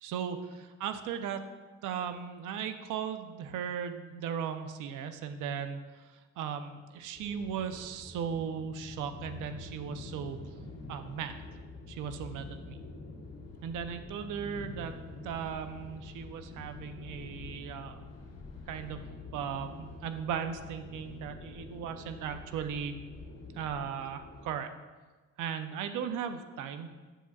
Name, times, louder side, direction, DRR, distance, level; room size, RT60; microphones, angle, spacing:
voice 1, 0.0-1.5 1.8-10.4 10.9-11.4 11.9-12.8 13.6-14.9 15.2-18.0 18.7-19.0 19.3-22.9 23.6-24.7 25.4-26.9, right 7 dB, 90° right, 8 dB, 0.6 m, -37 dB
sound 1, 7.1-24.6, left 2 dB, 55° left, 1.8 m, -47 dB
9.9 x 7.1 x 2.3 m, 1.3 s
cardioid pair, 90°, 30 cm